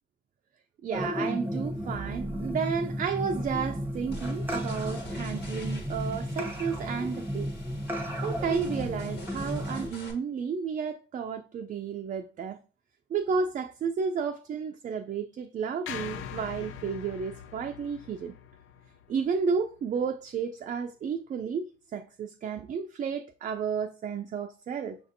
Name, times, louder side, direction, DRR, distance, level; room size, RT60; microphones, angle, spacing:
voice 1, 0.8-7.6 8.2-12.6 13.1-18.3 19.1-25.0, right 6 dB, 40° right, 0.4 m, -32 dB
sound 1, 0.9-9.9, equal, 10° right, 0.8 m, -33 dB
sound 2, 4.1-10.1, left 2 dB, 60° left, 1.4 m, -46 dB
sound 3, 15.9-20.2, left 8 dB, 80° left, 0.4 m, -43 dB
5.8 x 2.6 x 2.6 m
cardioid pair, 90°, 20 cm